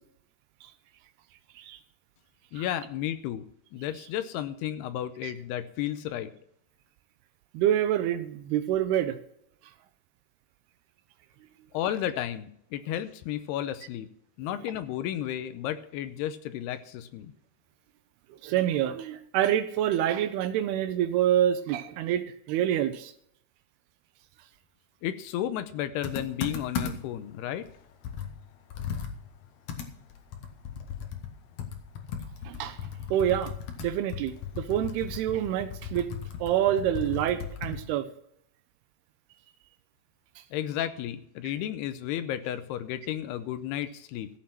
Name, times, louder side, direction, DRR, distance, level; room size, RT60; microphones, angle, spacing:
voice 1, 2.5-3.4 3.7-6.3 11.7-14.1 14.4-17.3 25.0-27.7 40.5-44.3, left 11 dB, 80° left, 11 dB, 2.6 m, -33 dB
voice 2, 7.5-9.2 18.4-23.1 32.5-32.8 33.1-33.5 33.8-36.1 36.4-38.1, right 11 dB, 80° right, 11 dB, 2.5 m, -27 dB
Computer keyboard, 26.0-27.2 27.6-27.7 28.0-37.9, left 7 dB, 65° left, 2.1 m, -37 dB
14.5 x 7.5 x 5.8 m, 0.69 s
omnidirectional pair, 4.9 m